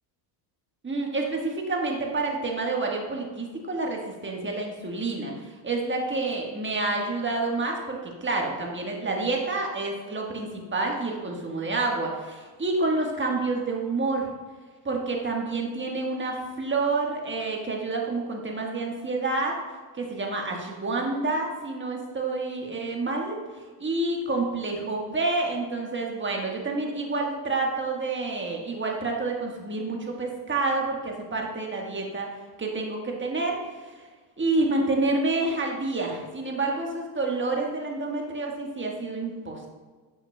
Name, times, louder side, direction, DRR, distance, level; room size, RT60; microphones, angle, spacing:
voice 1, 0.8-14.3 14.8-19.6 19.9-34.1 34.4-39.7, right 3 dB, 25° right, 0 dB, 1.4 m, -28 dB
7.5 x 5.7 x 2.2 m, 1.4 s
supercardioid pair, 80°, 50 cm